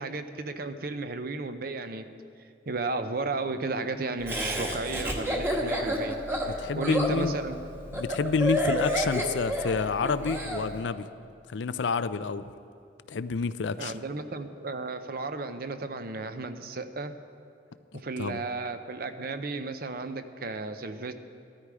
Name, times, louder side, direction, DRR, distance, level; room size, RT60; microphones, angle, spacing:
voice 1, 0.0-2.1 2.4-7.6 13.8-17.2 17.9-21.1, right 3 dB, 55° right, 9 dB, 0.7 m, -34 dB
Laughter, 4.3-10.6, equal, 15° right, 1.3 m, -29 dB
voice 2, 6.5-7.3 7.9-11.1 11.5-12.5 13.1-13.9 17.9-18.4, left 4 dB, 80° left, 13 dB, 0.5 m, -29 dB
14.5 x 13.0 x 4.9 m, 2.4 s
head